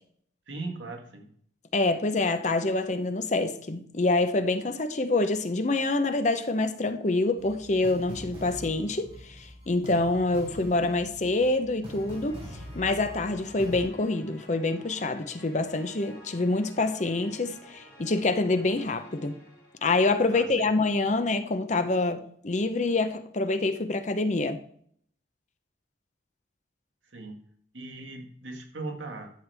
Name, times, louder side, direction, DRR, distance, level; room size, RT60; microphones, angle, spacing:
voice 1, 0.5-1.3 20.3-20.5 27.1-27.4 27.7-29.3, right 3 dB, 75° right, 1.9 m, -38 dB
voice 2, 1.7-19.4 19.8-24.6, left 2 dB, 40° left, 0.7 m, -26 dB
sound 1, 7.4-13.9, equal, 30° right, 4.4 m, -43 dB
sound 2, 11.8-20.4, equal, 20° left, 3.5 m, -51 dB
11.5 x 7.7 x 3.4 m
head